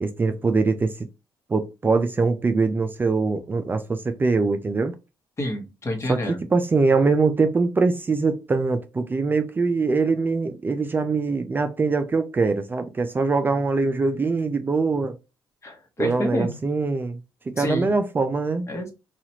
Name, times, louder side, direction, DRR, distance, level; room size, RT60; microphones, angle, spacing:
voice 1, 0.0-1.1 1.5-4.9 6.1-15.1 16.0-17.2 17.5-18.7, right 4 dB, 25° right, 0.3 m, -23 dB
voice 2, 5.4-6.4 15.6-16.6 17.6-17.9 18.7-18.9, left 1 dB, 35° left, 1.1 m, -28 dB
2.9 x 2.4 x 2.8 m
cardioid pair, 80°, 8 cm